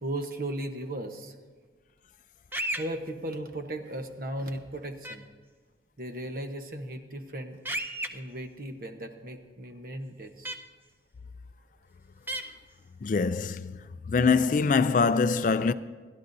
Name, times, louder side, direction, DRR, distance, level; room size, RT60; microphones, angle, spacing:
voice 1, 0.0-1.3 2.8-5.3 6.0-7.6 8.1-10.5, right 1 dB, 50° right, 1.0 m, -36 dB
sound 1, 2.5-2.8 5.0-5.2 7.7-8.1 10.5-10.6 12.3-12.4, right 1 dB, 10° right, 0.5 m, -32 dB
voice 2, 13.0-13.8 14.1-15.7, left 4 dB, 45° left, 0.3 m, -24 dB
28.5 x 11.5 x 2.7 m
head